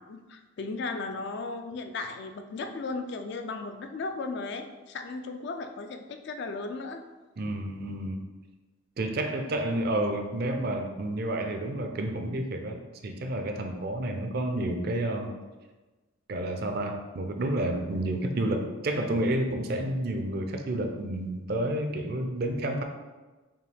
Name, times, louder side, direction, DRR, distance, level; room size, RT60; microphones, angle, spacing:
voice 1, 0.0-7.0, left 3 dB, 55° left, 6 dB, 0.3 m, -36 dB
voice 2, 7.4-8.2 9.0-15.3 16.3-22.8, right 1 dB, 50° right, 4 dB, 0.4 m, -30 dB
5.4 x 2.3 x 3.4 m, 1.2 s
head